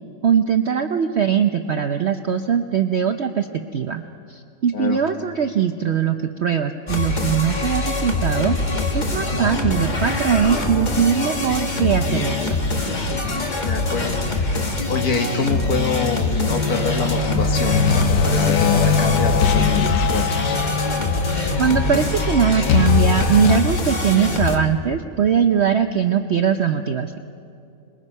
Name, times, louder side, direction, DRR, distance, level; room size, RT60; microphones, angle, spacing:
voice 1, 0.2-3.5 3.7-4.0 4.3-12.6 21.6-27.2, right 7 dB, 60° right, 7 dB, 0.7 m, -21 dB
sound 1, 6.9-24.6, left 3 dB, 30° left, 1.4 m, -24 dB
sound 2, 9.4-22.7, right 1 dB, 5° right, 1.4 m, -37 dB
voice 2, 13.6-14.6 14.9-20.6, left 4 dB, 60° left, 5 dB, 1.9 m, -26 dB
sound 3, 16.5-23.6, left 5 dB, 85° left, 1.5 m, -21 dB
25.5 x 21.5 x 5.5 m, 2.6 s
omnidirectional pair, 1.8 m